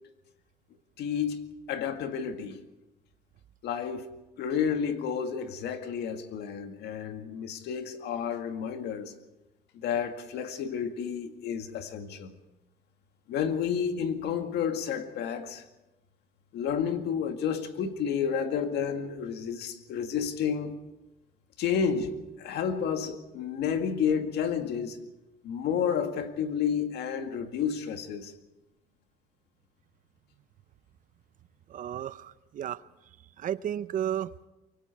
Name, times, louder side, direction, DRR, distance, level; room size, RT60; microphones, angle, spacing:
voice 1, 1.0-2.6 3.6-4.1 4.4-9.1 9.7-12.3 13.3-15.6 16.5-20.8 21.6-25.0 25.4-28.3, left 7 dB, 75° left, 2.1 m, -31 dB
voice 2, 31.7-32.8 33.4-34.3, right 10 dB, 50° right, 0.7 m, -33 dB
24.0 x 24.0 x 4.7 m
cardioid pair, 110°, 17 cm